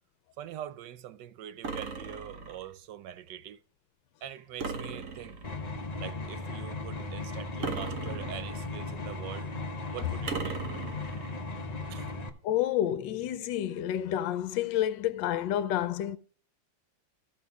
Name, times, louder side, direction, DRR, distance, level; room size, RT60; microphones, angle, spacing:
voice 1, 0.4-3.6 4.2-5.4 6.0-9.5 9.9-10.6 11.9-12.2, right 11 dB, 70° right, 1.1 m, -43 dB
sound 1, 1.6-2.7 4.6-5.7 7.6-8.7 10.3-11.3, right 4 dB, 50° right, 1.3 m, -37 dB
sound 2, 5.4-12.3, left 2 dB, 50° left, 0.5 m, -37 dB
voice 2, 12.4-16.2, left 11 dB, 75° left, 1.3 m, -29 dB
15.0 x 5.4 x 3.5 m
omnidirectional pair, 2.1 m